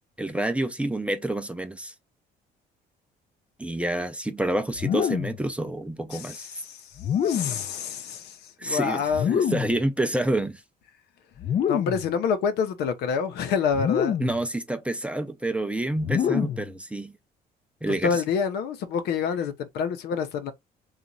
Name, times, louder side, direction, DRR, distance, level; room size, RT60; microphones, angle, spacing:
voice 1, 0.2-1.9 3.6-6.5 8.6-10.6 14.2-17.1 17.8-18.2, right 1 dB, 5° right, 0.5 m, -28 dB
sound 1, 4.7-5.4 7.0-7.7 9.1-9.8 11.4-12.1 13.7-14.4 16.0-16.7, left 8 dB, 45° left, 0.4 m, -26 dB
voice 2, 6.1-6.8 7.2-9.3 11.7-14.2 18.0-20.5, left 6 dB, 75° left, 0.8 m, -27 dB
2.9 x 2.4 x 3.9 m
cardioid pair, 110°, 17 cm